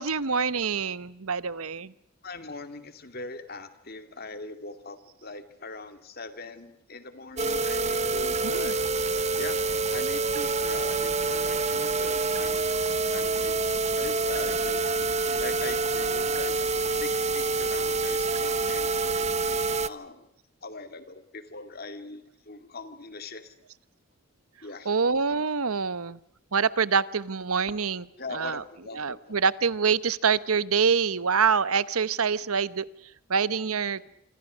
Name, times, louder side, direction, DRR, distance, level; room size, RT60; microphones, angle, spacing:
voice 1, 0.0-1.9 8.4-8.7 24.9-26.2 26.5-28.0 28.3-28.6 28.9-32.8 33.3-34.0, right 5 dB, 80° right, 16 dB, 1.0 m, -25 dB
voice 2, 2.2-8.8 9.4-9.6 9.9-12.7 13.1-13.5 13.9-16.6 16.9-19.3 19.8-20.3 20.6-23.5 24.6-24.9 28.2-29.4, left 3 dB, 45° left, 9 dB, 2.4 m, -41 dB
sound 1, 7.4-19.9, right 3 dB, 30° right, 0.9 m, -27 dB
27.0 x 26.0 x 6.3 m, 0.76 s
head